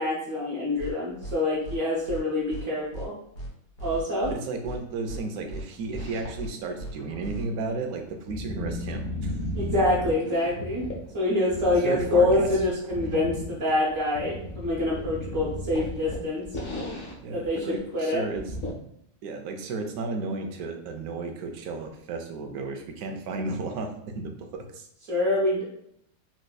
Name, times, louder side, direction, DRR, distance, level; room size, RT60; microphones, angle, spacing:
voice 1, 0.0-3.1 3.8-4.3 9.5-10.9 11.1-16.4 17.3-18.2 25.1-25.6, left 1 dB, 65° right, -5 dB, 1.3 m, -26 dB
sound 1, 0.8-0.9 1.2-1.3 1.6-1.8 2.1-2.2 2.5-2.6 2.9-3.1 3.3-3.5 3.8-4.3 4.6-4.8 5.1-5.2 5.5-5.6 5.9-6.1 6.3-6.5 6.8-6.9 7.2-7.4, right 1 dB, 90° left, 1.4 m, -37 dB
voice 2, 4.3-9.4 11.8-12.5 17.2-18.4 19.2-24.9, right 3 dB, 80° right, 4 dB, 1.1 m, -33 dB
sound 2, 5.4-6.5 6.9-11.1 11.5-17.2 17.4-17.5 17.9-18.0 18.4-18.7, left 1 dB, 50° left, 0.8 m, -35 dB
4.1 x 2.5 x 2.3 m, 0.71 s
omnidirectional pair, 1.5 m